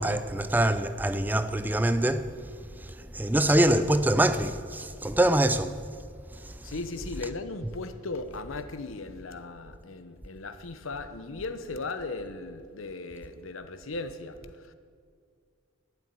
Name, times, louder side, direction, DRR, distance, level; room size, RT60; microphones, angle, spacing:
voice 1, 0.0-2.3 3.1-5.7, right 1 dB, 10° right, 0.4 m, -24 dB
voice 2, 6.6-14.4, left 3 dB, 90° left, 0.9 m, -37 dB
12.0 x 7.2 x 9.6 m
head